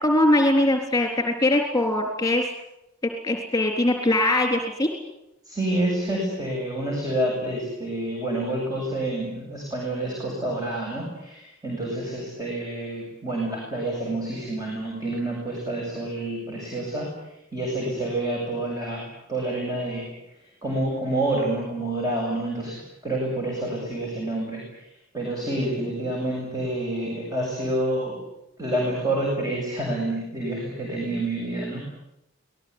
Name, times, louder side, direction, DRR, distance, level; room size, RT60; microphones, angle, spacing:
voice 1, 0.0-2.4 3.2-4.9, left 1 dB, 20° left, 4 dB, 3.9 m, -21 dB
voice 2, 5.4-17.1 17.5-20.1 20.6-24.6 25.1-28.2 28.6-31.8, right 1 dB, 20° right, -2 dB, 7.9 m, -28 dB
27.0 x 20.0 x 9.8 m, 0.86 s
head